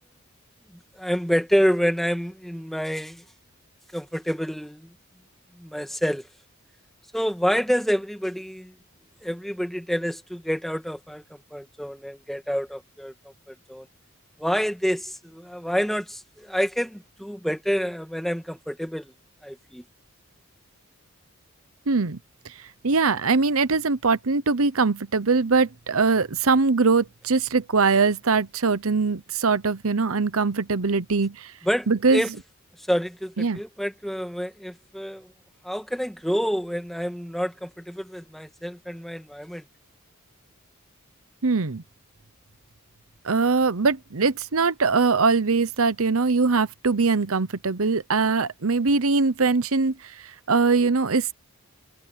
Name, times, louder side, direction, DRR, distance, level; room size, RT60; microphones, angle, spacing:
voice 1, 1.0-3.2 3.9-4.9 5.6-6.2 7.1-8.7 9.2-11.2 11.5-13.1 13.5-13.9 14.4-19.1 19.4-19.8 31.6-32.3 32.9-35.3 35.6-39.6, equal, ahead, 1.9 m, -27 dB
voice 2, 21.9-22.2 22.8-31.5 31.9-32.2 33.4-33.6 41.4-41.8 43.2-49.9 50.5-51.3, right 4 dB, 70° right, 0.9 m, -22 dB
head